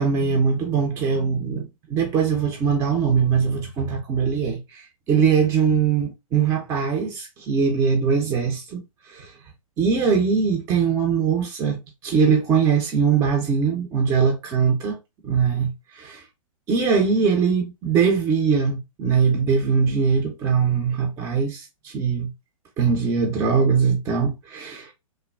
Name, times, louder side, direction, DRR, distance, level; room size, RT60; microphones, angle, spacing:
voice 1, 0.0-8.8 9.1-9.3 9.8-15.0 15.2-16.2 16.7-22.3 22.8-24.9, right 6 dB, 20° right, 0.5 m, -21 dB
3.2 x 2.0 x 2.2 m
hypercardioid pair, 120°, 18 cm